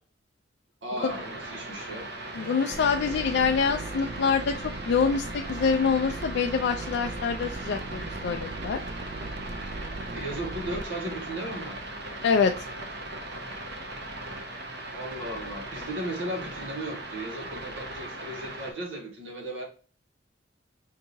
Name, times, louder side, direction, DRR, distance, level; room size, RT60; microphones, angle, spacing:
voice 1, 0.8-2.1 10.1-11.8 14.9-19.6, right 1 dB, 85° right, 0 dB, 1.4 m, -36 dB
sound 1, 1.1-18.7, right 2 dB, 60° right, 0.8 m, -39 dB
voice 2, 2.3-8.8 12.2-12.5, left 5 dB, 60° left, 2 dB, 0.3 m, -25 dB
Bowed string instrument, 2.3-9.3, right 1 dB, 10° right, 0.9 m, -46 dB
sound 2, 2.7-10.8, right 3 dB, 40° right, 0.3 m, -39 dB
4.5 x 2.8 x 2.6 m, 0.40 s
head